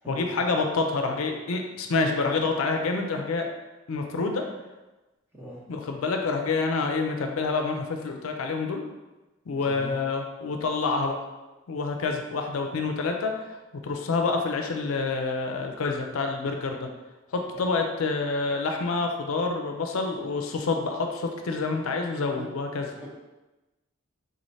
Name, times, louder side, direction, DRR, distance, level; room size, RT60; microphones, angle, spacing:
voice 1, 0.1-3.5 3.9-4.4 5.7-8.8 9.5-11.2 11.7-13.6 13.8-16.9 17.3-22.9, left 3 dB, 80° left, 3 dB, 0.5 m, -27 dB
voice 2, 9.6-9.9 22.3-22.4 22.9-23.1, right 1 dB, 10° right, -6 dB, 0.7 m, -40 dB
3.9 x 3.1 x 2.7 m, 1.1 s
head